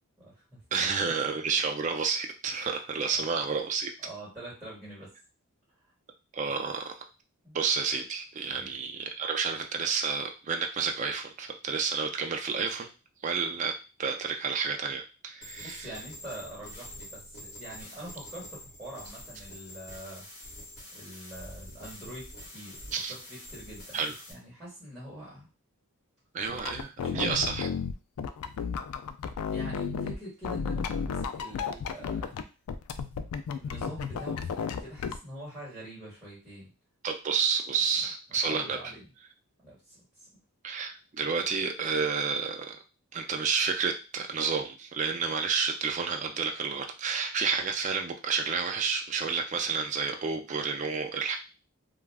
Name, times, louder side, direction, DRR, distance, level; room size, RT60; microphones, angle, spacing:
voice 1, 0.2-0.9 1.2-1.4 3.1-3.3 4.0-5.1 7.4-7.6 8.5-8.7 15.6-20.3 20.9-24.0 24.3-25.5 27.0-27.4 29.5-32.3 33.6-36.7 38.4-39.1 39.6-40.0, right 1 dB, 10° right, -7 dB, 1.5 m, -44 dB
voice 2, 0.7-3.9 6.3-6.9 7.5-12.9 13.2-13.7 14.0-15.9 22.9-23.1 23.9-24.1 26.3-27.7 37.0-38.8 40.6-42.8 43.1-51.4, right 5 dB, 35° right, 4 dB, 0.3 m, -30 dB
sound 1, 15.4-24.3, left 1 dB, 45° left, 1.2 m, -46 dB
sound 2, 26.5-30.2 30.4-32.4 32.7-35.2, left 6 dB, 75° left, 0.3 m, -33 dB
2.3 x 2.3 x 3.3 m, 0.31 s
head